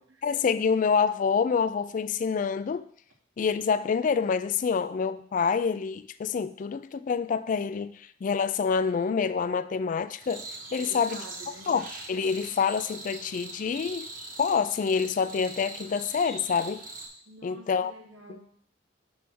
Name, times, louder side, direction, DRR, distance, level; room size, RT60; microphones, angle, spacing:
voice 1, 0.2-2.9 3.4-10.4 10.7-11.2 11.7-14.1 14.4-16.8 17.4-17.9 18.3-18.4, left 6 dB, 45° left, 0.3 m, -27 dB
sound 1, 10.2-17.1, right 2 dB, 45° right, 1.3 m, -42 dB
voice 2, 10.8-11.7 17.2-18.5, right 1 dB, 85° right, 1.5 m, -48 dB
6.3 x 3.5 x 6.0 m
head